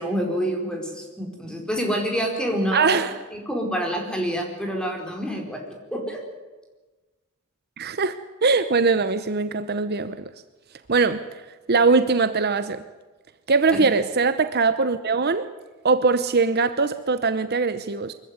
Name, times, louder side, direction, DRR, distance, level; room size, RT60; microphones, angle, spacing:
voice 1, 0.0-3.0 3.3-6.2 13.7-13.8, equal, 5° left, 2 dB, 4.8 m, -27 dB
voice 2, 2.7-3.1 7.8-8.1 8.4-10.3 10.9-11.2 11.7-12.8 13.5-15.4 15.8-18.1, right 4 dB, 50° right, 11 dB, 0.9 m, -21 dB
24.0 x 15.0 x 9.7 m, 1.2 s
head